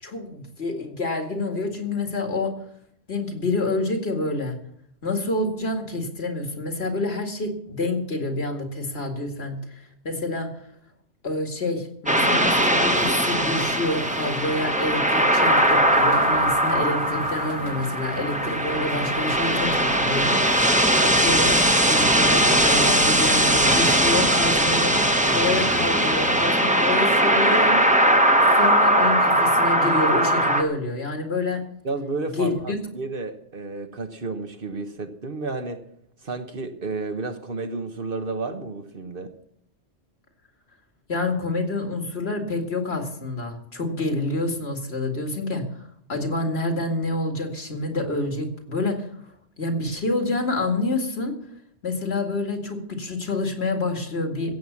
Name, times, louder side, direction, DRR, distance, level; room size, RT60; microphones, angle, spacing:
voice 1, 0.0-2.5 3.1-4.6 5.0-10.5 11.2-20.7 21.0-27.8 28.5-31.6 32.4-32.8 41.1-49.1 49.6-51.4 51.8-54.6, left 2 dB, 60° left, 4 dB, 2.4 m, -28 dB
sound 1, 12.1-30.6, right 1 dB, 5° right, 1.2 m, -20 dB
sound 2, 12.4-26.4, right 3 dB, 90° right, 1.7 m, -38 dB
voice 2, 31.8-35.8 36.2-39.3, right 3 dB, 50° right, 7 dB, 1.3 m, -31 dB
16.0 x 8.0 x 7.2 m, 0.70 s
omnidirectional pair, 1.2 m